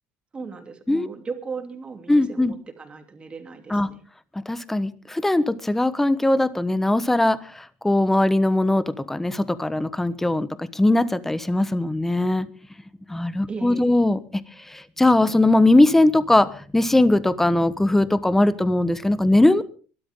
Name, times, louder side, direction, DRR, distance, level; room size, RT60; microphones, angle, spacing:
voice 1, 0.3-4.0 13.5-13.9, right 5 dB, 25° right, 5 dB, 3.1 m, -37 dB
voice 2, 2.1-2.5 3.7-3.9 4.5-12.5 13.1-14.2 14.7-19.6, left 2 dB, 5° left, 15 dB, 1.1 m, -20 dB
24.0 x 12.5 x 3.7 m, 0.39 s
cardioid pair, 125°, 4 cm